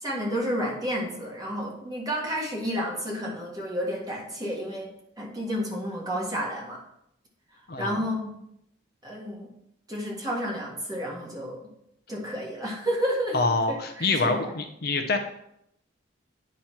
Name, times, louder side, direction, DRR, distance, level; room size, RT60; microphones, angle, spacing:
voice 1, 0.0-4.9 5.2-6.8 7.8-8.3 9.0-9.5 9.9-11.6 12.1-14.5, equal, 20° right, -3 dB, 1.6 m, -31 dB
voice 2, 7.7-8.0 13.3-15.2, left 3 dB, 50° left, 5 dB, 0.6 m, -26 dB
8.9 x 3.1 x 5.6 m, 0.76 s
head